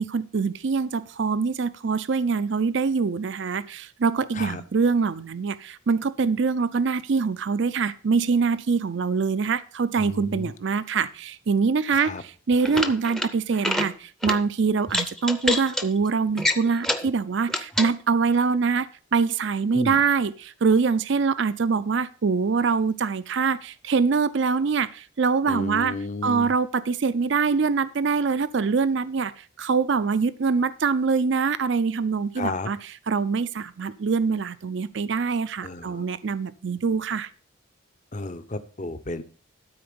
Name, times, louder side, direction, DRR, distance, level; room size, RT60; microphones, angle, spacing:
voice 1, 0.0-25.9 26.2-32.8 33.1-37.3, right 5 dB, 55° right, 15 dB, 0.4 m, -24 dB
voice 2, 10.0-10.5 11.9-12.2 19.7-20.0 25.5-26.5 32.4-32.7 35.6-36.0 38.1-39.2, left 2 dB, 35° left, 11 dB, 0.8 m, -32 dB
sound 1, 12.5-13.3 13.6-13.9 14.2-14.4 14.9-15.8 16.4-17.1 17.5-17.9, left 1 dB, ahead, 0.6 m, -26 dB
13.0 x 4.3 x 6.8 m, 0.40 s
head